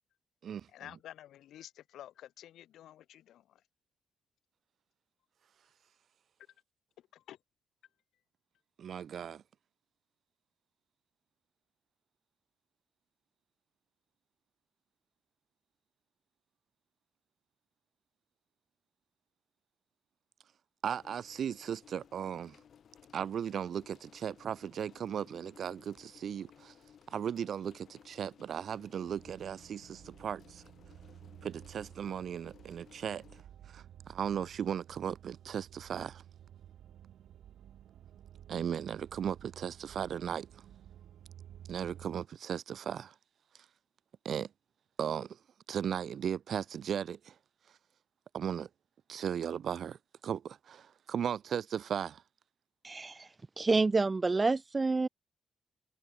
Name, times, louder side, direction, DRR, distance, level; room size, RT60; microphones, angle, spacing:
voice 1, 0.7-3.6 7.1-7.4, left 12 dB, 85° left, 3.7 m, -51 dB
voice 2, 8.8-9.4 20.8-22.6 23.1-26.7 27.1-30.6 31.4-33.2 33.7-36.2 38.5-40.5 41.7-43.1 44.2-44.5 45.0-45.4 45.7-47.3 48.3-48.7 49.1-50.0 50.2-52.2, right 8 dB, 50° right, 2.5 m, -36 dB
sound 1, 20.9-33.4, left 8 dB, 50° left, 4.1 m, -60 dB
sound 2, 29.1-42.3, right 11 dB, 70° right, 3.5 m, -54 dB
voice 3, 52.8-53.3 53.6-55.1, right 3 dB, 20° right, 0.9 m, -28 dB
cardioid pair, 160°, 0 cm